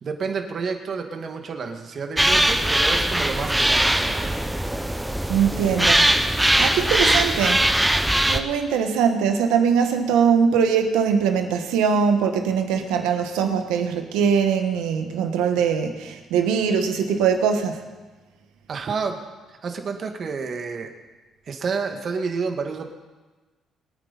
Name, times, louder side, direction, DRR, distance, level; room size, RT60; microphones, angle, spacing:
voice 1, 0.0-4.4 18.7-19.2 19.5-20.9 21.5-22.9, right 5 dB, 55° right, 5 dB, 1.9 m, -29 dB
sound 1, 2.2-8.4, right 1 dB, 10° right, 1.0 m, -20 dB
voice 2, 5.3-6.1 6.6-7.6 8.3-17.8, right 7 dB, 85° right, 6 dB, 1.4 m, -21 dB
22.5 x 9.4 x 4.2 m, 1.3 s
supercardioid pair, 65°, 0 cm